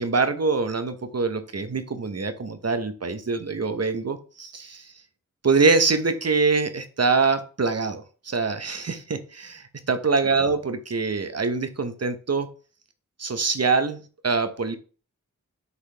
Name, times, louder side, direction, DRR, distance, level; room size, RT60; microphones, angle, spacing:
voice 1, 0.0-4.9 5.4-12.5 13.2-14.8, right 4 dB, 50° right, 10 dB, 1.0 m, -24 dB
9.7 x 3.9 x 3.4 m, 0.37 s
cardioid pair, 45°, 33 cm